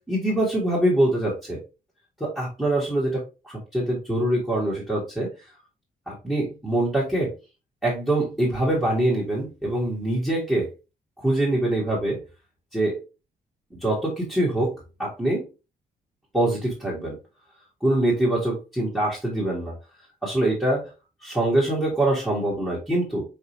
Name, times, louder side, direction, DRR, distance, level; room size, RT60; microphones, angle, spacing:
voice 1, 0.1-1.6 2.2-5.3 6.1-7.3 7.8-10.7 11.2-12.2 12.7-13.0 13.7-14.7 15.0-15.4 16.3-17.2 17.8-19.7 20.2-20.9 21.2-23.2, right 1 dB, ahead, -7 dB, 1.4 m, -24 dB
5.2 x 2.6 x 2.9 m, 0.30 s
cardioid pair, 140°, 16 cm